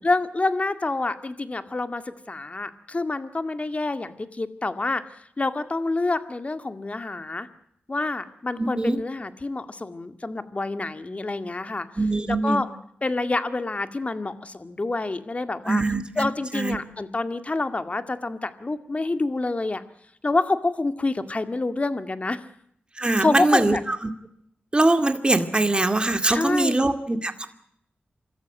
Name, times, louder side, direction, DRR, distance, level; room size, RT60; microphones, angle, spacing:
voice 1, 0.0-5.0 5.4-7.5 7.9-11.9 12.3-12.7 13.0-15.8 16.2-19.8 20.2-22.4 23.2-23.8 26.3-26.9, left 2 dB, 35° left, 10 dB, 2.1 m, -27 dB
voice 2, 8.6-9.0 12.0-12.6 15.7-16.8 23.0-24.1 24.7-27.5, right 2 dB, 25° right, 8 dB, 2.3 m, -23 dB
25.5 x 14.0 x 9.1 m, 0.70 s
cardioid pair, 60°, 4 cm